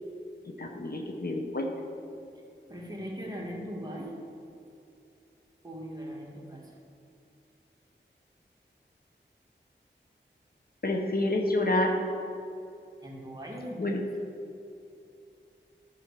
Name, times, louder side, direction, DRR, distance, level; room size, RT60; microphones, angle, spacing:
voice 1, 0.5-1.7 10.8-11.9 13.8-14.0, left 1 dB, 50° left, 1 dB, 0.9 m, -28 dB
voice 2, 2.7-4.2 5.6-6.8 13.0-13.9, equal, 20° right, -3 dB, 1.8 m, -39 dB
11.0 x 5.4 x 4.7 m, 2.7 s
wide cardioid pair, 50°, 20 cm